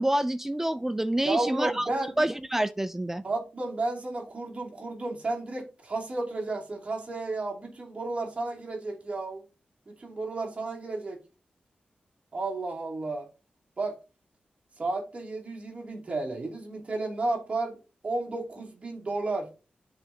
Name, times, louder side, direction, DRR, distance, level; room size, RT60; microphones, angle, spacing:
voice 1, 0.0-1.9 2.2-3.2, right 1 dB, 10° right, 0.4 m, -27 dB
voice 2, 1.2-2.1 3.2-9.4 9.9-11.2 12.3-13.3 13.8-13.9 14.8-17.8 18.0-19.5, right 2 dB, 40° right, 2.6 m, -32 dB
12.0 x 4.1 x 2.7 m
wide cardioid pair, 100°, 3 cm